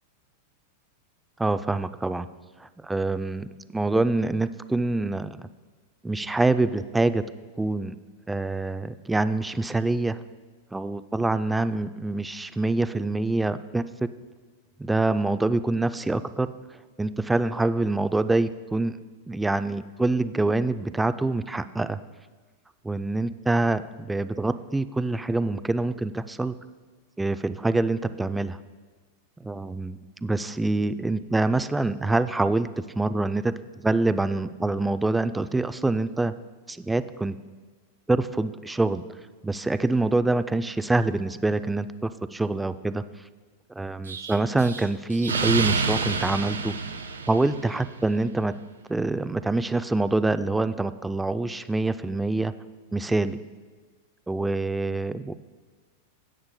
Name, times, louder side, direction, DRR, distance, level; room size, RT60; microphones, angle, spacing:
voice 1, 1.4-2.3 2.6-5.5 6.0-7.3 7.6-8.0 8.3-10.2 10.7-13.8 14.8-16.5 17.0-18.9 19.3-22.0 22.8-26.5 27.2-28.6 29.4-32.7 33.0-33.6 33.8-36.3 36.7-37.4 38.1-39.0 39.4-43.0 43.7-46.7 47.3-48.5 48.9-52.5 52.9-53.4 54.3-55.3, right 2 dB, 10° right, 12 dB, 0.4 m, -25 dB
Explosion, 44.1-47.9, right 4 dB, 90° right, 0.6 m, -28 dB
16.5 x 8.7 x 2.2 m, 1.4 s
hypercardioid pair, 100°, 0 cm